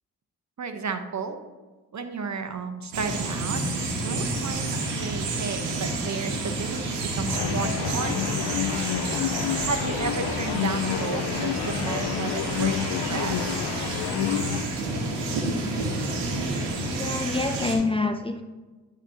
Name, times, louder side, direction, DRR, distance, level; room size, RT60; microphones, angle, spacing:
voice 1, 0.6-1.4 1.9-3.6 4.0-8.4 9.6-13.4, right 4 dB, 40° right, 7 dB, 1.0 m, -33 dB
sound 1, 2.9-17.7, right 2 dB, 85° right, 1.2 m, -30 dB
sound 2, 7.3-14.7, left 11 dB, 75° left, 0.5 m, -29 dB
voice 2, 16.9-18.4, left 3 dB, 15° left, 6 dB, 0.5 m, -26 dB
10.5 x 4.2 x 2.9 m, 1.2 s
hypercardioid pair, 40°, 42 cm